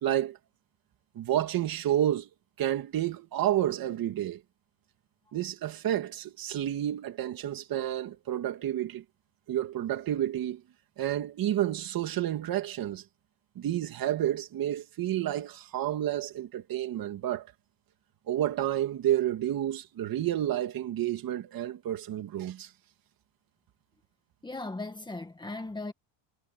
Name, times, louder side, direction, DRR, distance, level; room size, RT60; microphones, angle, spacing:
voice 1, 0.0-0.4 1.2-2.3 2.6-4.4 5.3-9.0 9.5-10.6 11.0-13.0 13.6-17.5 18.3-22.7, right 12 dB, 45° right, 2.4 m, -30 dB
voice 2, 24.4-25.9, left 2 dB, 10° left, 1.9 m, -37 dB
cardioid pair, 170°, 50 cm